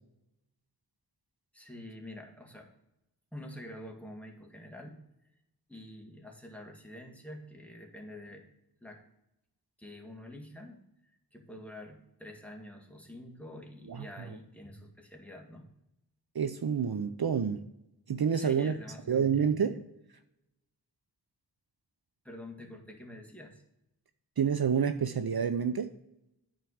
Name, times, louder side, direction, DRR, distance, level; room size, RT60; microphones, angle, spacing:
voice 1, 1.5-2.7 3.3-5.0 5.7-8.5 8.8-9.0 9.8-15.7 18.3-19.8 22.2-23.6, left 1 dB, 5° left, 1 dB, 1.8 m, -47 dB
voice 2, 16.3-17.6 18.1-18.7 19.1-19.8 24.4-25.9, right 7 dB, 60° right, 9 dB, 0.6 m, -28 dB
9.2 x 4.5 x 6.3 m, 0.85 s
wide cardioid pair, 45°, 43 cm